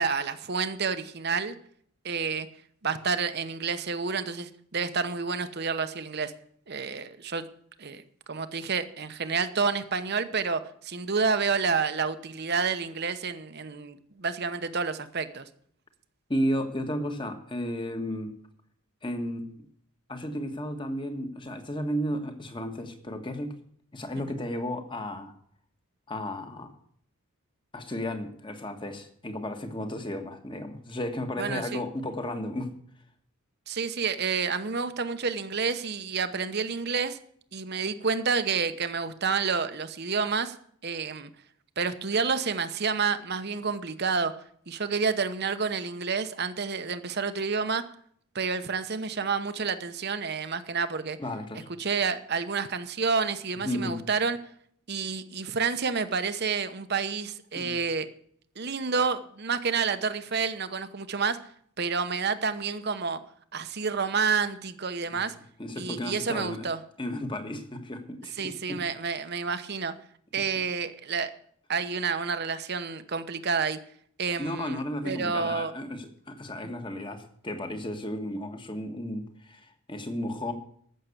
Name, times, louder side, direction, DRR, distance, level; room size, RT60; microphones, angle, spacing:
voice 1, 0.0-1.5 2.0-2.5 2.8-6.3 6.7-7.4 7.8-8.0 8.3-15.5 24.1-24.2 31.4-31.8 33.7-37.2 37.5-40.5 40.8-41.3 41.8-44.3 44.7-47.8 48.3-51.2 51.8-54.4 54.9-58.1 58.6-61.4 61.8-63.2 63.5-65.3 65.8-66.8 68.4-69.9 70.3-71.3 71.7-73.8 74.2-75.7 76.6-76.7, right 5 dB, 50° right, 10 dB, 0.9 m, -29 dB
voice 2, 16.3-18.4 19.0-19.7 20.1-23.6 23.9-25.3 26.1-26.7 27.7-32.7 51.2-51.7 53.6-54.0 57.5-57.8 65.1-65.2 65.6-66.7 67.0-68.8 70.4-70.5 74.4-80.5, left 1 dB, 20° left, 6 dB, 1.4 m, -33 dB
14.5 x 6.6 x 8.3 m, 0.63 s
head